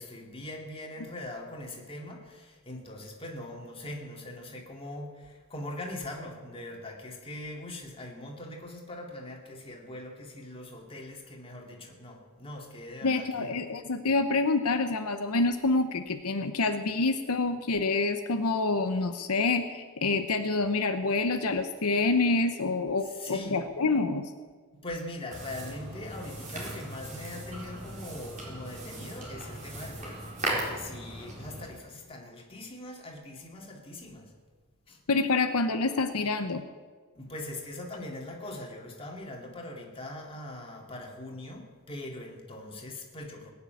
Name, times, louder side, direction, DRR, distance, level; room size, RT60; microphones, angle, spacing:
voice 1, 0.0-13.5 23.0-23.7 24.7-34.3 34.9-35.0 37.1-43.5, left 1 dB, 25° left, 2.5 m, -41 dB
voice 2, 13.0-24.2 35.1-36.6, left 3 dB, 75° left, 0.9 m, -27 dB
sound 1, 25.3-31.7, right 1 dB, 35° right, 4.2 m, -38 dB
20.0 x 6.9 x 9.4 m
head